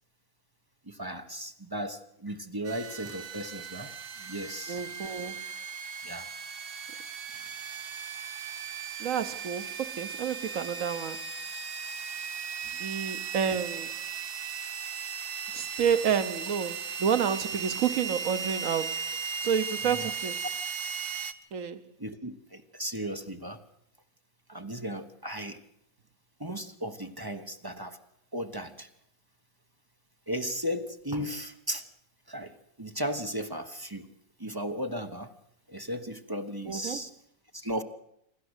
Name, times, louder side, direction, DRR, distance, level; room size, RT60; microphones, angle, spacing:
voice 1, 0.9-3.9 4.2-4.8 6.0-6.3 19.8-20.1 22.0-23.6 24.5-25.6 26.4-28.0 28.3-28.9 30.3-31.8 32.3-34.1 34.4-35.3 35.7-37.1 37.5-37.8, equal, 15° right, 1.0 m, -36 dB
sound 1, 2.6-21.3, right 6 dB, 45° right, 1.0 m, -37 dB
voice 2, 4.7-5.4 9.0-11.2 12.8-13.9 15.5-19.1 19.4-20.4 21.5-21.8 36.6-37.1, right 7 dB, 70° right, 1.4 m, -29 dB
27.5 x 12.0 x 8.1 m
omnidirectional pair, 1.5 m